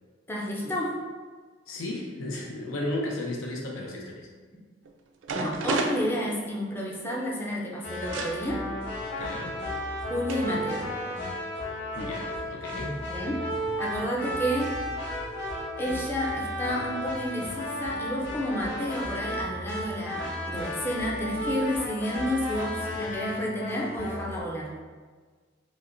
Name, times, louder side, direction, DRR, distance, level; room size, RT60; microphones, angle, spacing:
voice 1, 0.3-1.0 5.3-8.6 10.1-10.9 13.1-13.5 13.8-14.8 15.8-24.8, equal, 10° left, -3 dB, 0.4 m, -30 dB
voice 2, 1.7-4.3 9.2-9.6 11.9-13.0, left 1 dB, 90° left, 0 dB, 0.6 m, -34 dB
sound 1, 4.8-4.9 5.2-6.9 8.1-8.4 9.5-9.6 10.3-10.5 10.8-11.3, right 4 dB, 70° right, 0.3 m, -32 dB
sound 2, 7.8-24.4, equal, 60° left, 1.3 m, -34 dB
5.0 x 2.1 x 2.5 m, 1.5 s
head